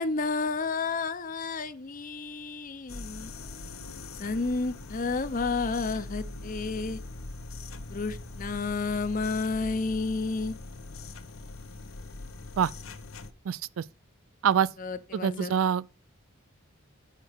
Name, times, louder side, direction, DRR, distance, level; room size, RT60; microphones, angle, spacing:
voice 1, 0.0-3.3 4.2-7.0 7.9-10.6 14.8-15.5, left 4 dB, 40° left, 0.6 m, -31 dB
sound 1, 2.9-13.3, left 2 dB, 80° left, 0.9 m, -41 dB
voice 2, 13.5-13.8 14.4-14.7 15.1-15.8, right 8 dB, 70° right, 0.3 m, -25 dB
6.6 x 6.2 x 4.6 m
head